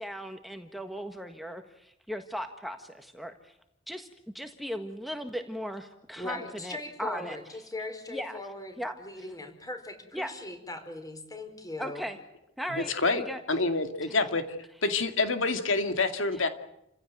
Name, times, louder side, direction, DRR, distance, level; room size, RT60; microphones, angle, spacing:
voice 1, 0.0-3.5 3.9-4.1 4.3-7.4 8.1-8.4 8.8-9.2 10.1-10.3 11.8-12.2 12.6-12.9 13.2-13.4 14.1-14.2 16.3-16.5, equal, ahead, 6 dB, 1.6 m, -37 dB
voice 2, 6.2-12.0, left 2 dB, 20° left, 7 dB, 4.7 m, -39 dB
voice 3, 12.7-13.2 13.5-14.4 14.8-16.5, left 3 dB, 75° left, 8 dB, 2.4 m, -27 dB
29.5 x 16.5 x 9.3 m, 0.81 s
head